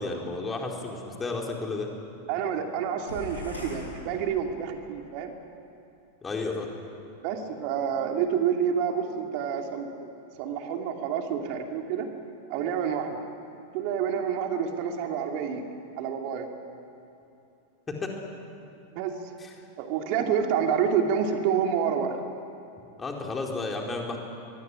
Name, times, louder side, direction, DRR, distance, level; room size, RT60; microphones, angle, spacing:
voice 1, 0.0-1.9 6.2-6.7 17.9-18.1 19.4-19.5 23.0-24.2, left 3 dB, 15° left, 0 dB, 4.3 m, -32 dB
voice 2, 2.3-5.3 7.2-10.1 10.4-12.1 12.5-13.2 13.7-15.6 16.0-16.5 18.9-19.1 19.8-22.2, right 7 dB, 45° right, 4 dB, 2.7 m, -28 dB
sound 1, 3.1-4.9, left 2 dB, 75° left, 6.3 m, -41 dB
24.0 x 23.0 x 9.9 m, 2.8 s
figure-of-eight pair, 90°, 0 cm